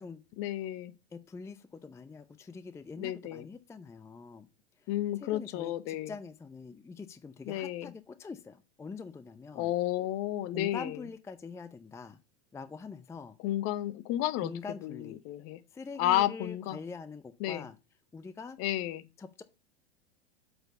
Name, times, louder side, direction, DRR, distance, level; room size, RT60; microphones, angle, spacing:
voice 1, 0.4-0.9 3.0-3.5 4.9-6.1 7.5-7.9 9.5-11.0 13.4-14.5 14.8-15.6 16.0-16.8 17.4-17.7 18.6-19.0, left 14 dB, 45° left, 0.9 m, -32 dB
voice 2, 1.1-4.5 4.8-4.9 5.2-9.7 10.5-12.2 12.5-13.4 14.4-15.2 15.7-17.8 18.1-18.6 19.2-19.4, left 4 dB, 10° left, 0.5 m, -44 dB
7.8 x 4.5 x 6.6 m
hypercardioid pair, 100°, 33 cm